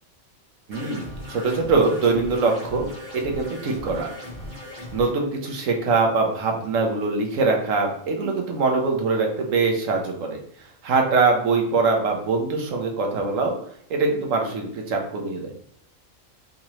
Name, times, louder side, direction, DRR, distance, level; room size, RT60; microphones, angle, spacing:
sound 1, 0.7-5.1, equal, 35° right, 1.1 m, -37 dB
voice 1, 0.7-2.9 3.1-4.1 4.9-10.4 10.8-13.6 13.9-15.5, right 3 dB, 70° right, 2 dB, 1.2 m, -23 dB
3.8 x 2.9 x 3.0 m, 0.68 s
omnidirectional pair, 1.4 m